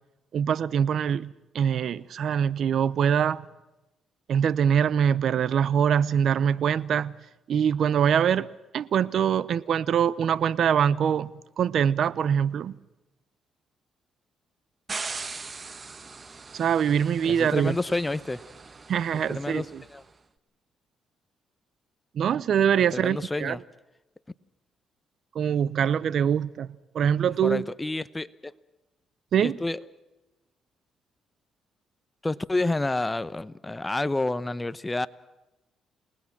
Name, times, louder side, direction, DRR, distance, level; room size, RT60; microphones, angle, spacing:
voice 1, 0.3-3.4 4.3-7.1 7.5-8.5 8.7-11.3 11.6-12.7 16.5-17.8 18.9-19.8 22.1-23.6 25.3-26.7 26.9-27.6 29.3-29.6, right 8 dB, 65° right, 0.7 m, -24 dB
sound 1, 14.9-20.0, right 4 dB, 35° right, 1.4 m, -40 dB
voice 2, 17.2-18.4 19.1-19.7 19.9-20.0 22.9-23.6 27.4-28.5 29.4-29.8 32.2-35.1, left 2 dB, 15° left, 0.9 m, -29 dB
28.5 x 19.5 x 6.0 m
cardioid pair, 90°, 0 cm